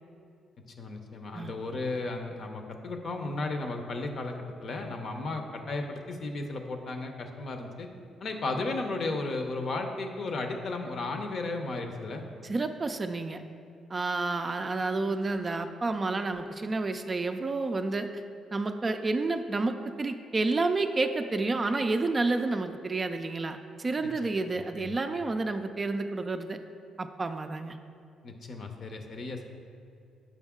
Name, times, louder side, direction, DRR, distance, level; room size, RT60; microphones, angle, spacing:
voice 1, 0.8-7.9 8.2-12.2 24.0-24.1 24.7-25.0 28.2-29.5, left 2 dB, 55° left, 4 dB, 0.7 m, -34 dB
voice 2, 12.4-13.4 13.9-18.2 18.5-26.6 27.0-27.8, right 3 dB, 30° right, 7 dB, 0.3 m, -30 dB
7.0 x 5.2 x 3.6 m, 2.5 s
cardioid pair, 90°, 0 cm